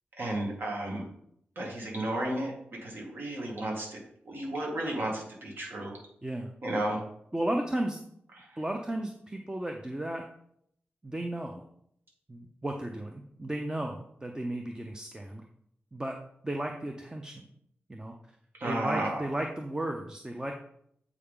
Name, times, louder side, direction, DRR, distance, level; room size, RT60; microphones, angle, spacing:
voice 1, 0.1-1.0 1.6-2.5 2.8-4.0 4.3-6.0 6.6-7.0 8.4-8.5 18.6-19.2, right 1 dB, 60° right, -1 dB, 1.9 m, -33 dB
voice 2, 7.3-8.0 8.6-10.2 11.0-11.6 12.3-15.4 15.9-16.2 16.4-17.5 17.9-18.2 18.6-20.5, right 1 dB, 15° right, 3 dB, 0.6 m, -34 dB
8.2 x 4.7 x 3.7 m, 0.71 s
wide cardioid pair, 95°, 4 cm